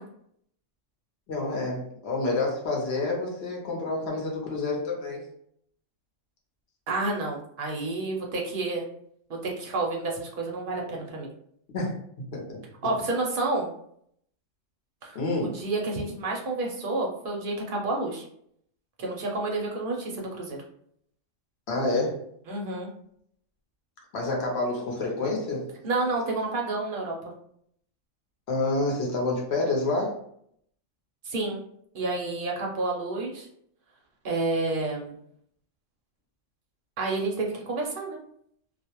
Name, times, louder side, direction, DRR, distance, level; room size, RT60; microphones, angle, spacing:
voice 1, 1.3-5.3 11.7-11.9 12.3-12.6 15.1-15.6 21.7-22.2 24.1-25.7 28.5-30.2, left 2 dB, 65° left, -1 dB, 0.9 m, -28 dB
voice 2, 6.9-8.8 9.4-11.3 12.8-13.7 15.0-18.2 19.0-20.6 22.5-22.9 25.8-27.2 31.2-31.6 31.9-33.5 34.2-35.2 37.0-38.2, right 2 dB, 55° right, -1 dB, 0.6 m, -29 dB
2.4 x 2.0 x 2.9 m, 0.68 s
omnidirectional pair, 1.3 m